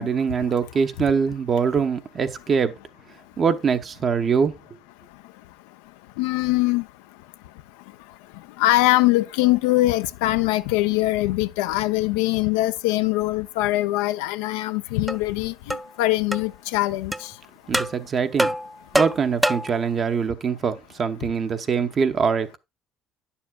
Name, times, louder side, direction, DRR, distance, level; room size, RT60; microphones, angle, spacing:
voice 1, 0.0-2.7 3.4-4.5 17.7-18.5 18.9-22.6, right 6 dB, 45° right, 0.8 m, -23 dB
voice 2, 6.2-6.8 8.6-17.1, left 17 dB, 90° left, 0.3 m, -22 dB
sound 1, 15.1-15.2 15.7-15.9 16.3-16.4 17.1-17.2 17.7-17.9 18.4-19.8, right 1 dB, 5° right, 0.4 m, -24 dB
10.0 x 7.0 x 2.2 m
supercardioid pair, 80°, 0 cm